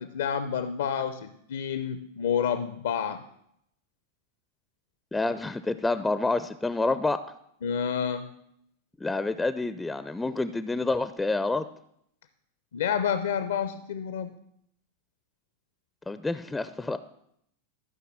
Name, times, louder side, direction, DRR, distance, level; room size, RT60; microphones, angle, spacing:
voice 1, 0.0-3.2 7.6-8.3 12.7-14.3, left 8 dB, 60° left, 12 dB, 0.6 m, -29 dB
voice 2, 5.1-7.3 9.0-11.7 16.1-17.0, left 3 dB, 10° left, 13 dB, 0.5 m, -28 dB
13.5 x 5.8 x 7.3 m, 0.73 s
figure-of-eight pair, 90°, 0 cm